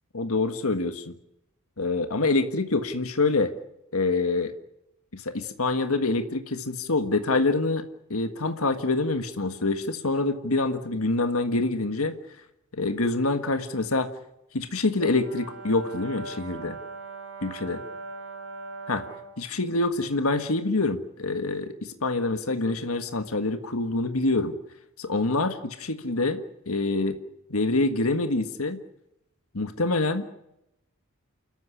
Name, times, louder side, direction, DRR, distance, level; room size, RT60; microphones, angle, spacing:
voice 1, 0.1-1.2 1.8-3.5 3.9-4.5 5.1-7.8 8.1-12.1 12.7-14.1 14.5-16.8 17.4-17.8 18.9-19.0 19.4-24.5 25.0-27.2 27.5-28.8 29.5-30.3, left 3 dB, 80° left, 8 dB, 1.6 m, -26 dB
Brass instrument, 15.0-19.4, right 3 dB, 55° right, 6.0 m, -40 dB
29.5 x 13.5 x 9.9 m, 0.85 s
head